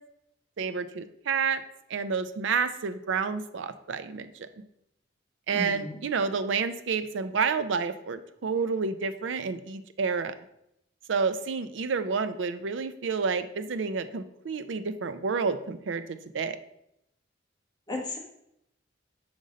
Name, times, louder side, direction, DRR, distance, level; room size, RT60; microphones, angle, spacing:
voice 1, 0.6-1.6 1.9-4.5 5.5-10.3 11.1-16.0 16.3-16.6, right 5 dB, 75° right, 11 dB, 0.5 m, -29 dB
voice 2, 5.5-6.0 17.9-18.2, left 2 dB, 20° left, -1 dB, 1.3 m, -34 dB
5.2 x 4.0 x 5.1 m, 0.79 s
head